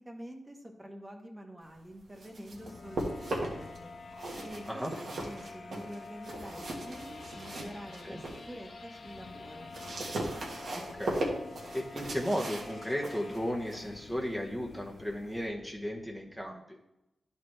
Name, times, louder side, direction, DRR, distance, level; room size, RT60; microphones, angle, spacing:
voice 1, 0.0-3.9 4.4-9.7, equal, 20° right, 2 dB, 1.2 m, -47 dB
sound 1, 1.9-3.8 4.1-8.5 8.9-15.5, right 1 dB, 75° right, 1.5 m, -39 dB
sound 2, 2.5-16.5, left 3 dB, 60° left, 0.7 m, -48 dB
voice 2, 10.9-11.2 11.7-16.8, equal, 5° left, -1 dB, 1.0 m, -35 dB
11.0 x 4.4 x 3.3 m, 0.90 s
cardioid pair, 60°, 0 cm